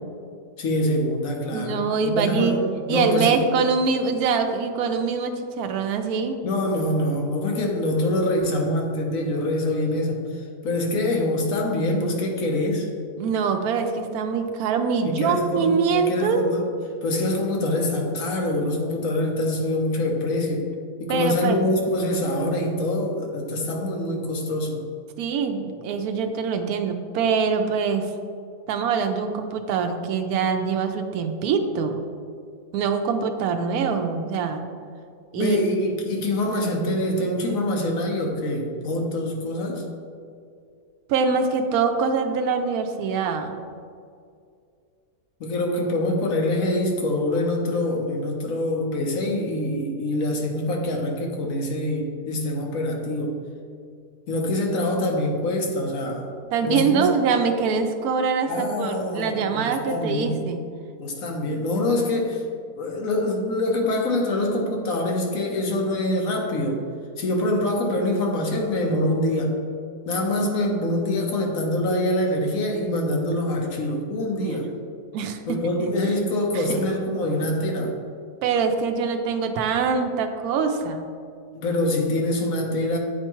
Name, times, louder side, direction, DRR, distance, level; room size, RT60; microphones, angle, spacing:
voice 1, 0.6-2.6 2.9-3.4 6.4-12.9 15.0-16.7 17.0-20.7 21.0-24.8 35.4-39.8 45.4-53.3 54.3-56.3 56.6-57.1 58.5-60.5 61.0-62.5 62.8-66.8 67.2-69.6 70.1-74.7 75.5-78.0 81.5-83.0, left 1 dB, 65° left, 1 dB, 1.2 m, -25 dB
voice 2, 1.5-2.6 2.9-6.4 13.2-16.4 21.1-21.6 25.2-28.1 28.7-32.0 32.7-34.6 35.3-35.6 41.1-43.6 56.5-60.6 74.4-74.6 75.1-75.6 76.5-76.8 78.4-81.1, right 5 dB, 75° right, 5 dB, 1.1 m, -24 dB
8.6 x 4.5 x 3.0 m, 2.3 s
omnidirectional pair, 1.6 m